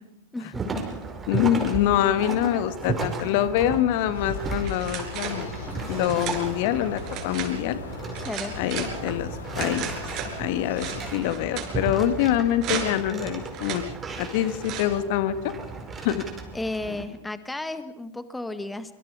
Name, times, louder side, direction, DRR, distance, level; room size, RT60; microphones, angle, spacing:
sound 1, 0.5-17.1, right 4 dB, 20° right, 5.0 m, -35 dB
voice 1, 1.3-5.5 5.9-7.8 8.6-9.9 10.4-13.8 14.2-15.5 16.0-16.2, left 11 dB, 55° left, 12 dB, 1.8 m, -25 dB
sound 2, 4.1-11.1, left 6 dB, 75° left, 2.3 m, -40 dB
sound 3, 4.6-5.4 5.9-6.4 7.0-7.5 8.1-8.9 9.5-10.3 10.8-11.7 12.6-13.1 13.5-13.8 14.6-15.0, right 8 dB, 40° right, 5.7 m, -34 dB
voice 2, 8.2-8.5 16.5-18.9, left 2 dB, 5° left, 11 dB, 1.5 m, -33 dB
26.0 x 25.0 x 4.9 m, 0.86 s
figure-of-eight pair, 100°, 0 cm